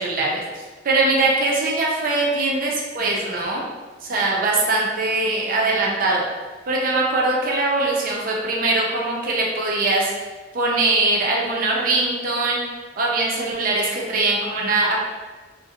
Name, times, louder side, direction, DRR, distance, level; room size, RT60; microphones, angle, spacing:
voice 1, 0.0-3.6 4.0-6.2 6.7-10.1 10.5-12.6 13.0-15.0, right 2 dB, 50° right, -3 dB, 0.5 m, -21 dB
2.4 x 2.1 x 2.7 m, 1.3 s
head